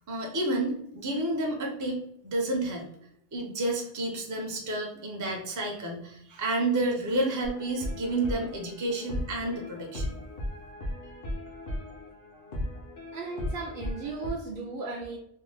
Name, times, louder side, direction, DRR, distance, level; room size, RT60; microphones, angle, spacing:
voice 1, 0.1-2.9 3.3-10.2, right 2 dB, 30° right, 0 dB, 0.4 m, -30 dB
sound 1, 7.4-14.3, left 1 dB, 60° left, 0.8 m, -37 dB
voice 2, 13.1-15.2, right 3 dB, 65° right, -1 dB, 0.7 m, -36 dB
2.6 x 2.1 x 3.2 m, 0.73 s
omnidirectional pair, 1.0 m